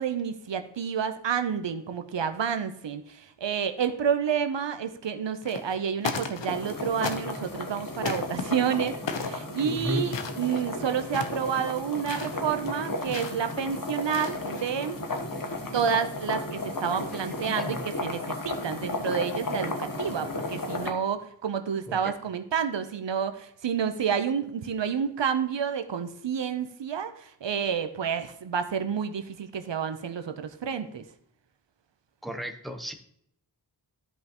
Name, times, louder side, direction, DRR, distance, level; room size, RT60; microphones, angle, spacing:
voice 1, 0.0-15.0 15.7-31.0, right 7 dB, 75° right, 9 dB, 0.7 m, -29 dB
sound 1, 5.4-5.8 6.0-6.7 7.0-7.5 8.0-8.4 9.1-9.4 10.0-10.7 11.0-11.5 12.0-12.3 13.1-13.5 14.0-14.6, left 5 dB, 75° left, 0.9 m, -35 dB
sound 2, 6.4-20.9, left 2 dB, 45° left, 1.3 m, -34 dB
voice 2, 9.6-10.1 15.3-15.4 17.1-17.8 21.9-22.1 32.2-32.9, left 1 dB, ahead, 5 dB, 0.9 m, -35 dB
13.0 x 5.4 x 3.0 m, 0.70 s
wide cardioid pair, 70°, 44 cm